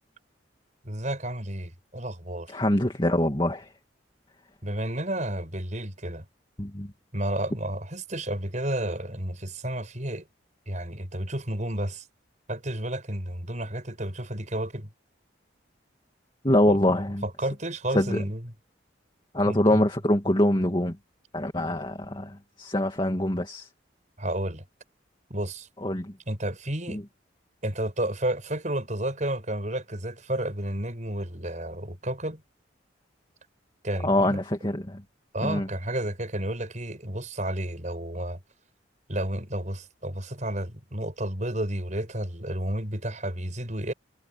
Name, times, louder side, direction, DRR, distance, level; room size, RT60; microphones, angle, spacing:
voice 1, 0.8-2.5 4.6-6.3 7.1-10.3 10.7-12.1 12.5-14.9 16.7-17.0 17.2-18.4 19.5-19.8 24.2-24.6 25.3-25.7 26.3-27.0 27.6-32.4 33.8-34.4 35.3-38.4 39.1-43.9, right 1 dB, 40° right, 7.2 m, -31 dB
voice 2, 2.5-3.7 6.6-6.9 16.4-17.2 17.9-18.2 19.3-21.0 21.3-23.7 25.8-26.1 26.9-27.0 34.0-35.0 35.4-35.7, left 1 dB, 25° left, 2.4 m, -24 dB
head